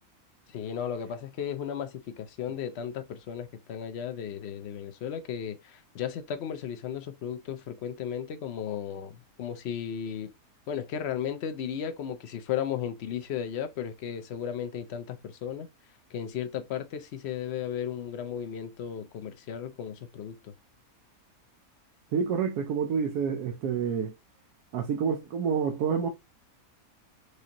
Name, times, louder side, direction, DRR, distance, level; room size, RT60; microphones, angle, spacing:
voice 1, 0.5-10.3 10.7-15.7 16.1-20.5, left 8 dB, 55° left, 0.8 m, -35 dB
voice 2, 22.1-24.1 24.7-26.1, right 6 dB, 90° right, 1.2 m, -28 dB
4.9 x 2.7 x 2.9 m
omnidirectional pair, 1.6 m